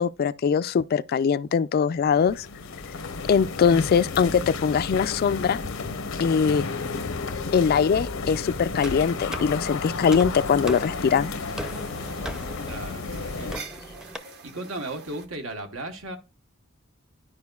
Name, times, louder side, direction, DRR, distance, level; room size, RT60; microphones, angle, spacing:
voice 1, 0.0-2.5 3.3-5.6 6.2-6.6 7.5-11.3, left 6 dB, 50° left, 0.3 m, -22 dB
sound 1, 2.0-13.6, left 4 dB, 85° left, 0.8 m, -32 dB
sound 2, 8.8-14.2, equal, 5° right, 0.5 m, -39 dB
sound 3, 10.2-15.3, right 5 dB, 55° right, 1.0 m, -46 dB
voice 2, 12.6-13.6 14.0-16.2, right 2 dB, 85° right, 1.2 m, -36 dB
11.5 x 4.9 x 2.3 m
head